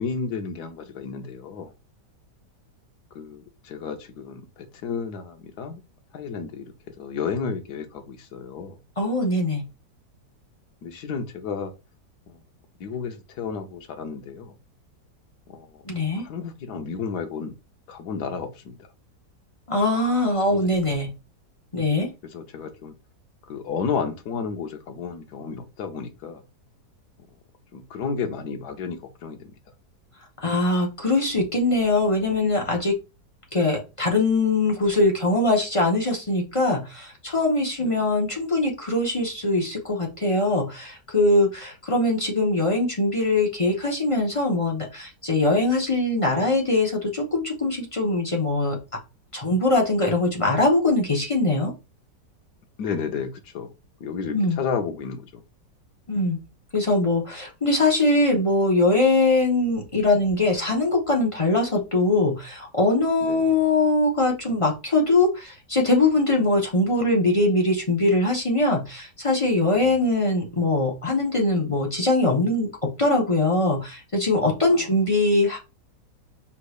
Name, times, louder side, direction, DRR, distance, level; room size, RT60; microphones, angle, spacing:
voice 1, 0.0-1.7 3.1-5.8 6.1-8.8 10.8-11.7 12.3-12.4 12.8-14.5 15.5-15.7 16.1-17.5 17.9-18.7 20.5-20.6 22.3-22.9 23.5-26.4 27.7-29.5 37.8-38.0 45.5-45.6 52.8-53.7 54.0-55.4 63.2-63.5 69.8-70.0 74.7-74.9, left 6 dB, 70° left, 1.3 m, -32 dB
voice 2, 9.0-9.6 15.8-16.2 19.7-21.1 21.7-22.1 30.4-32.9 33.5-48.8 49.3-51.7 54.3-54.6 56.1-56.4 56.7-72.7 73.0-75.6, left 2 dB, 30° left, 0.7 m, -22 dB
5.5 x 3.3 x 2.4 m
omnidirectional pair, 1.9 m